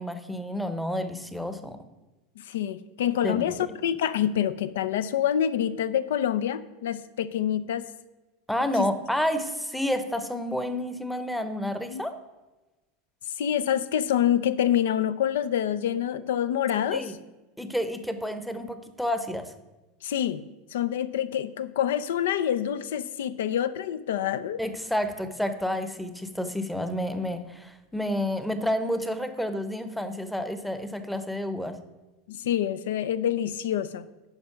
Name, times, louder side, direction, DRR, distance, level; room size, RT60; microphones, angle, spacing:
voice 1, 0.0-1.8 3.2-3.7 8.5-12.1 16.9-17.1 17.6-19.5 24.6-31.8, left 1 dB, ahead, 10 dB, 0.7 m, -30 dB
voice 2, 2.4-3.6 3.8-7.9 8.8-8.9 11.9-12.0 13.4-17.1 20.0-20.4 20.7-24.6 32.3-34.1, left 10 dB, 90° left, 15 dB, 0.5 m, -26 dB
9.9 x 5.2 x 5.8 m, 1.1 s
supercardioid pair, 140°, 0 cm